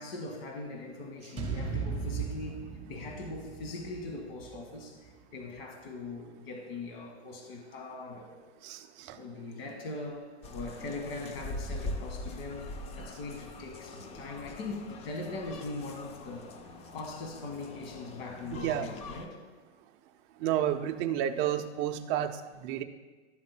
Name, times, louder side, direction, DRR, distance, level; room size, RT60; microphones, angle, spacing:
voice 1, 0.0-8.4 9.1-16.5 16.9-19.4, left 2 dB, 55° left, 2 dB, 1.8 m, -41 dB
sound 1, 1.4-5.6, right 5 dB, 15° right, 1.7 m, -38 dB
voice 2, 8.6-9.2 18.5-18.9 20.4-22.8, right 11 dB, 35° right, 7 dB, 0.6 m, -31 dB
sound 2, 10.4-19.3, left 2 dB, 20° left, 0.4 m, -43 dB
12.0 x 8.0 x 2.2 m, 1.3 s
hypercardioid pair, 130°, 34 cm